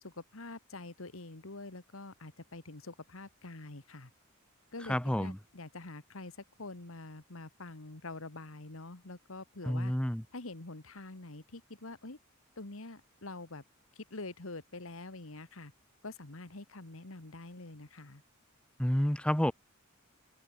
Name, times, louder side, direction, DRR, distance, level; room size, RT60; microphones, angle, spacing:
voice 1, 0.0-4.1 4.7-9.9 10.3-12.2 12.6-13.6 14.0-15.7 16.0-18.2, left 2 dB, 70° left, 1.9 m, -46 dB
voice 2, 4.9-5.4 9.7-10.2 18.8-19.5, equal, 5° left, 0.9 m, -29 dB
open air
head